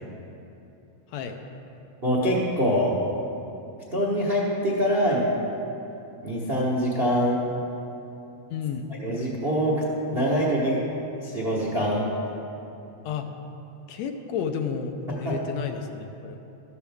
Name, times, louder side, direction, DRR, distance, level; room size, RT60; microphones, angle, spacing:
voice 1, 2.0-2.9 3.9-5.3 6.2-7.4 9.0-9.8 10.1-10.8 11.2-12.1 15.2-15.3, equal, 80° right, -4 dB, 0.5 m, -24 dB
voice 2, 8.5-8.9 13.0-13.3 13.9-16.4, left 6 dB, 75° left, 5 dB, 1.8 m, -31 dB
13.0 x 12.0 x 3.5 m, 2.9 s
omnidirectional pair, 3.3 m